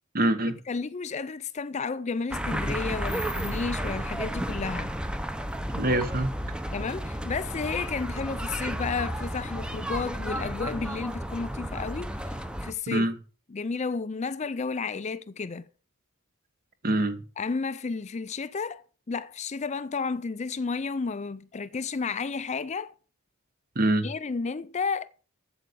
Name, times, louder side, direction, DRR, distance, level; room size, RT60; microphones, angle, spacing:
voice 1, 0.1-0.6 5.7-6.4 12.9-13.2 16.8-17.2 23.7-24.1, right 1 dB, 40° right, 1.3 m, -24 dB
voice 2, 0.7-4.9 6.7-12.4 12.6-13.1 13.5-15.7 17.4-18.8 19.1-22.9 24.0-25.1, left 4 dB, 30° left, 0.4 m, -32 dB
sound 1, 2.3-12.7, equal, 5° right, 0.7 m, -32 dB
8.5 x 7.9 x 6.8 m
head